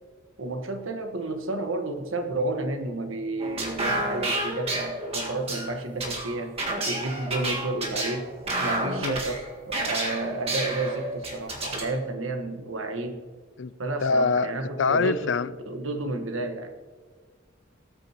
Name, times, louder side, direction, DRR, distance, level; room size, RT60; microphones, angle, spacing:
voice 1, 0.4-6.6 6.8-8.3 8.6-13.2 13.8-15.3 15.7-16.7, right 2 dB, 85° right, 6 dB, 1.4 m, -31 dB
sound 1, 3.4-11.9, right 1 dB, 30° right, 1.8 m, -30 dB
voice 2, 14.0-14.5 14.8-15.5, left 4 dB, 65° left, 17 dB, 0.4 m, -24 dB
19.5 x 9.0 x 3.0 m, 1.5 s
head